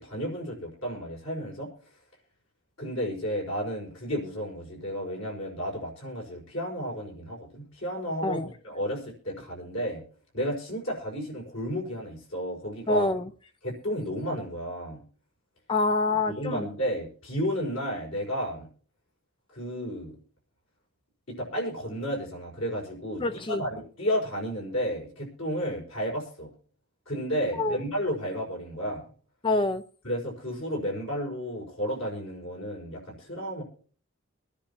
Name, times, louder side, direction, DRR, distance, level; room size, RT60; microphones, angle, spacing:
voice 1, 0.0-1.7 2.8-10.0 10.3-13.0 13.6-15.0 16.3-18.7 19.5-20.2 21.3-26.5 27.1-29.1 30.0-33.6, equal, 65° left, 5.5 m, -32 dB
voice 2, 12.9-13.3 15.7-16.7 23.2-23.6 27.6-27.8 29.4-29.8, left 2 dB, 25° left, 0.5 m, -26 dB
24.5 x 10.0 x 2.9 m
head